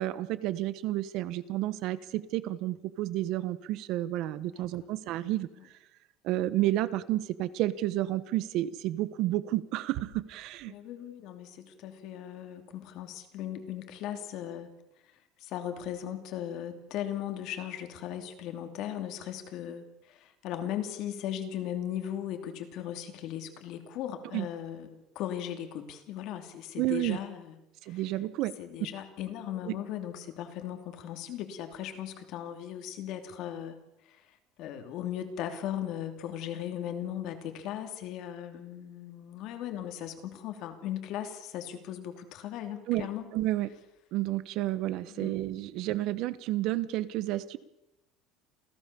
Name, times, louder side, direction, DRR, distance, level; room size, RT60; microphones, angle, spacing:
voice 1, 0.0-5.5 6.2-10.7 24.3-24.5 26.8-27.2 27.8-28.5 29.6-29.7 42.9-43.1 43.3-43.7 44.1-47.6, right 15 dB, 45° right, 16 dB, 1.2 m, -31 dB
voice 2, 4.4-4.9 5.2-5.3 10.7-14.7 15.0-15.1 15.4-27.6 27.8-28.0 28.6-43.3 45.1-45.3, left 10 dB, 45° left, 7 dB, 2.9 m, -38 dB
28.0 x 16.0 x 7.0 m, 0.89 s
cardioid pair, 180°, 0 cm